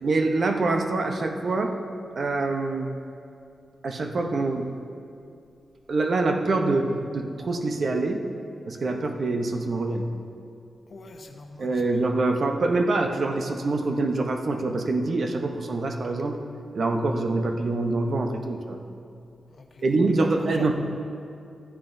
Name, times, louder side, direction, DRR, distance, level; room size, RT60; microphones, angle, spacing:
voice 1, 0.0-1.8 2.2-2.9 3.8-4.7 5.9-8.2 8.7-10.1 11.6-16.4 16.7-18.8 19.8-20.7, right 3 dB, 55° right, 4 dB, 0.8 m, -25 dB
voice 2, 10.9-11.7 19.5-19.8 20.4-20.7, left 3 dB, 50° left, 4 dB, 0.9 m, -42 dB
13.5 x 9.6 x 2.6 m, 2.5 s
wide cardioid pair, 120°, 0 cm